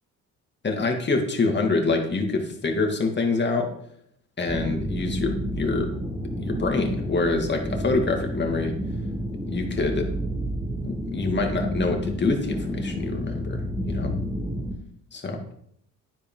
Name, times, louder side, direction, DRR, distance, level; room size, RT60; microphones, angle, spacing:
voice 1, 0.6-3.7 4.4-5.9 6.4-8.7 9.5-10.1 10.8-13.6 13.9-14.1 15.1-15.4, left 3 dB, 35° left, 3 dB, 2.6 m, -25 dB
sound 1, 4.5-14.7, equal, 15° right, 3.4 m, -30 dB
11.0 x 10.5 x 4.0 m, 0.69 s
cardioid pair, 90°, 30 cm